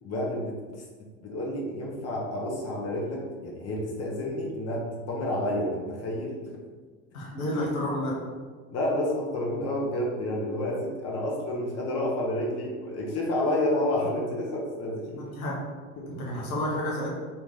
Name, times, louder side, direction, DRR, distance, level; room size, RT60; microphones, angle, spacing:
voice 1, 0.0-0.8 1.2-6.6 8.7-15.3 16.0-16.2, left 1 dB, 35° left, -2 dB, 0.9 m, -30 dB
voice 2, 7.1-8.2 15.2-15.5 16.1-17.1, left 1 dB, 75° left, -3 dB, 0.9 m, -30 dB
3.0 x 2.9 x 3.7 m, 1.5 s
figure-of-eight pair, 65°, 43 cm